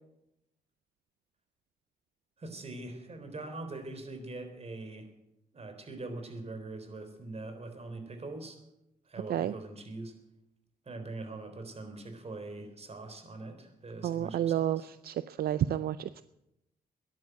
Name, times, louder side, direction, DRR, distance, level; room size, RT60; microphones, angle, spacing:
voice 1, 2.4-5.1 5.5-8.6 9.1-10.1 10.9-14.9, right 2 dB, 40° right, 7 dB, 3.8 m, -42 dB
voice 2, 14.0-16.2, right 11 dB, 75° right, 14 dB, 0.5 m, -30 dB
14.0 x 11.0 x 8.2 m, 0.87 s
cardioid pair, 70°, 16 cm